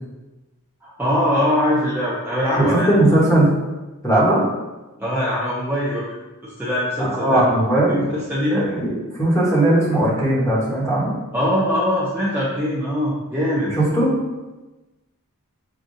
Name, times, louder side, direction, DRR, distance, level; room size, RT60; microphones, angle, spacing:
voice 1, 0.8-2.9 5.0-6.0 6.4-7.5 7.9-8.6 11.3-13.7, equal, 10° right, -8 dB, 0.6 m, -22 dB
voice 2, 2.6-3.5 4.0-4.4 7.0-8.0 8.5-11.1 13.7-14.1, right 1 dB, 15° left, -6 dB, 1.2 m, -18 dB
6.2 x 2.4 x 2.6 m, 1.1 s
head